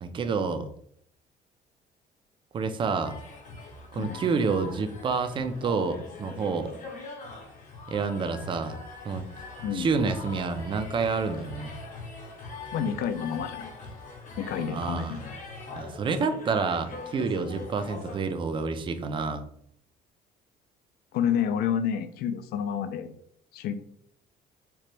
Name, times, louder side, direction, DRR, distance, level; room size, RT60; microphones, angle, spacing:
voice 1, 0.0-0.7 2.5-3.2 3.9-6.7 7.9-8.8 9.0-9.3 9.7-11.7 14.7-15.2 15.8-19.4, right 4 dB, 30° right, 9 dB, 0.3 m, -28 dB
sound 1, 3.0-18.2, left 3 dB, 50° left, 0.8 m, -42 dB
voice 2, 12.7-13.7 14.4-15.3 21.1-23.1 23.5-23.7, left 8 dB, 65° left, 11 dB, 0.4 m, -29 dB
2.9 x 2.1 x 3.1 m, 0.66 s
cardioid pair, 110°, 17 cm